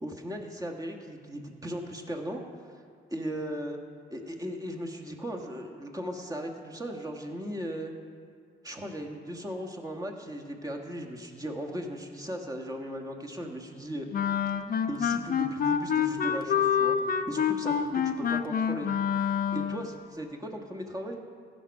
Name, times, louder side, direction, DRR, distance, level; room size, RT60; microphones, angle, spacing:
voice 1, 0.0-2.8 3.1-3.8 4.1-7.9 8.6-14.1 14.7-18.9 19.2-21.2, equal, 15° right, 1 dB, 1.5 m, -37 dB
Wind instrument woodwind instrument, 14.1-19.9, left 7 dB, 45° left, 0.6 m, -27 dB
16.5 x 6.1 x 5.3 m, 2.2 s
cardioid pair, 90°, 20 cm